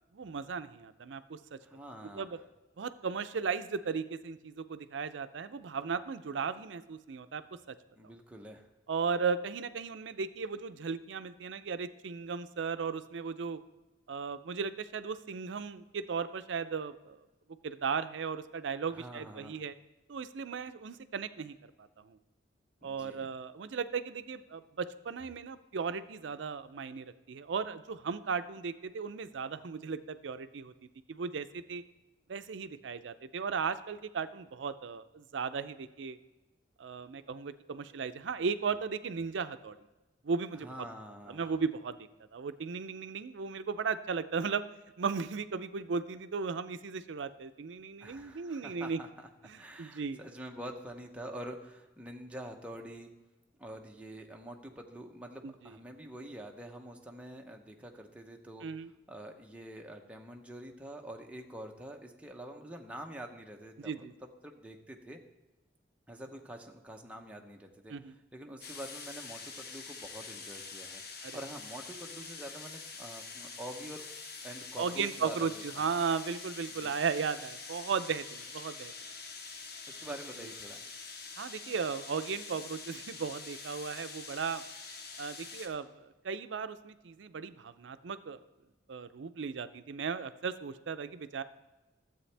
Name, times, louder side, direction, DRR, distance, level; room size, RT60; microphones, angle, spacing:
voice 1, 0.1-1.6 2.1-2.4 2.8-7.8 8.9-13.6 14.1-17.3 17.6-19.7 20.1-22.2 22.8-30.7 31.1-31.8 32.3-36.2 36.8-39.8 40.2-40.9 41.3-42.0 42.3-44.6 45.0-49.0 49.5-50.2 55.4-55.7 58.6-58.9 63.8-64.1 67.9-68.1 71.2-71.4 74.8-78.9 81.4-84.6 85.2-88.4 88.9-91.4, right 5 dB, 75° right, 12 dB, 0.5 m, -36 dB
voice 2, 1.6-2.3 7.9-8.7 18.9-19.6 22.8-23.3 40.6-41.5 48.0-49.3 49.6-53.1 53.6-58.7 59.1-65.2 66.1-67.9 68.3-74.0 74.4-75.8 76.8-77.0 79.9-80.9, right 1 dB, 5° right, 2 dB, 0.8 m, -46 dB
sound 1, 68.6-85.7, left 4 dB, 60° left, 1.0 m, -45 dB
12.5 x 7.8 x 3.3 m, 1.1 s
head